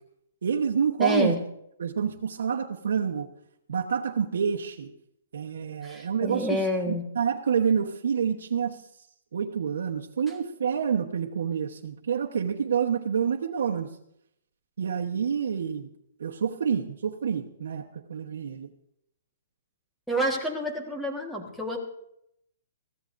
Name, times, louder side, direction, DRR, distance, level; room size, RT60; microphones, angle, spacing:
voice 1, 0.4-1.3 1.8-3.3 3.7-4.9 5.3-6.5 6.9-8.8 9.3-14.0 14.8-15.9 16.2-18.7, right 7 dB, 75° right, -1 dB, 1.1 m, -28 dB
voice 2, 1.0-1.4 5.8-7.0 20.1-21.8, equal, ahead, 1 dB, 1.5 m, -28 dB
23.0 x 15.0 x 2.7 m, 0.75 s
hypercardioid pair, 170°, 0 cm